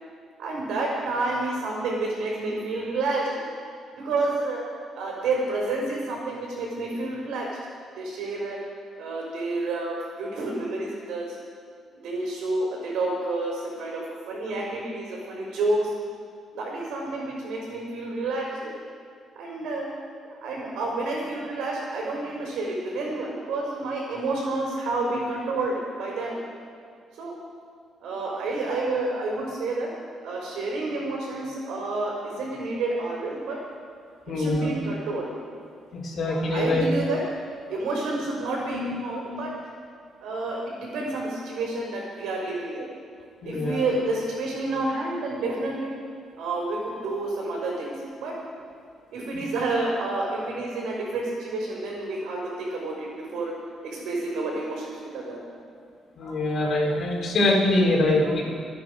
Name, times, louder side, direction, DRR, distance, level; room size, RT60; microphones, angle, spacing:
voice 1, 0.4-3.4 3.9-4.6 4.9-7.5 7.9-8.6 9.0-11.4 12.0-15.9 16.5-18.8 19.3-19.9 20.2-26.4 27.2-27.3 28.0-29.9 30.2-33.6 34.3-35.5 36.4-37.2 37.7-39.5 40.2-42.9 43.4-45.9 46.4-48.3 49.1-53.5 53.8-55.4, right 2 dB, 85° right, -4 dB, 4.9 m, -29 dB
voice 2, 34.3-34.7 35.9-36.8 38.7-38.8 43.4-43.8 56.2-58.4, left 2 dB, 60° left, -4 dB, 3.9 m, -23 dB
24.5 x 9.5 x 5.0 m, 2.2 s
cardioid pair, 90°, 0 cm